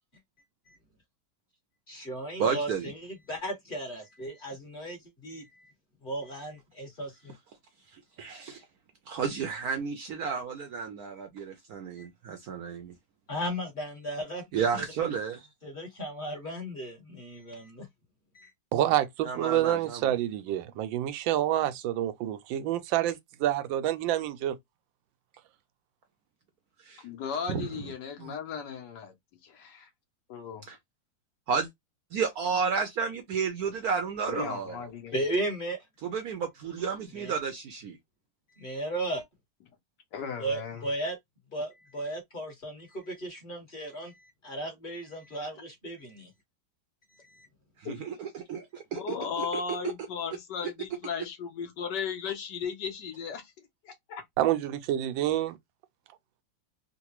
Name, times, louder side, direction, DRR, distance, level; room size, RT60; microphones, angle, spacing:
voice 1, 1.9-5.7 6.0-7.3 12.0-12.1 13.3-14.4 14.8-14.9 15.6-17.9 18.3-18.5 35.1-35.8 37.1-37.3 38.5-39.2 40.4-41.2 41.5-46.3 47.1-47.5, right 1 dB, 30° left, 1.3 m, -35 dB
voice 2, 2.4-2.9 7.9-8.6 9.1-12.9 14.5-15.5 19.2-20.1 26.8-27.0 27.5-27.9 28.2-28.3 30.7-30.8 31.5-31.7 32.1-34.8 36.0-38.0 47.8-49.5, right 6 dB, 70° right, 0.9 m, -32 dB
voice 3, 18.7-24.6 54.4-55.6, right 12 dB, 85° right, 1.3 m, -28 dB
voice 4, 27.0-29.1 29.4-29.9 30.3-30.8 34.3-35.1 40.1-40.8 47.8-48.2 48.9-53.5 53.8-54.2, left 6 dB, 70° left, 1.4 m, -36 dB
3.9 x 2.2 x 2.9 m
omnidirectional pair, 2.0 m